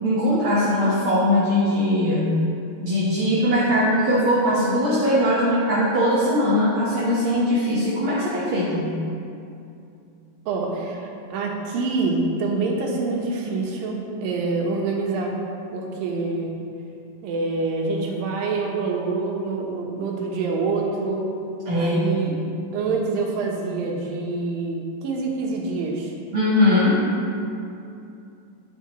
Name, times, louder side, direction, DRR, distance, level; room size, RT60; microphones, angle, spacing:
voice 1, 0.0-2.3 2.8-8.9 21.6-22.4 26.3-27.0, left 1 dB, 55° right, -9 dB, 1.5 m, -20 dB
voice 2, 10.5-15.3 15.7-16.5 17.2-21.3 21.7-22.4 22.7-26.1, right 3 dB, 75° right, -1 dB, 2.8 m, -26 dB
10.5 x 8.8 x 3.1 m, 2.6 s
omnidirectional pair, 4.1 m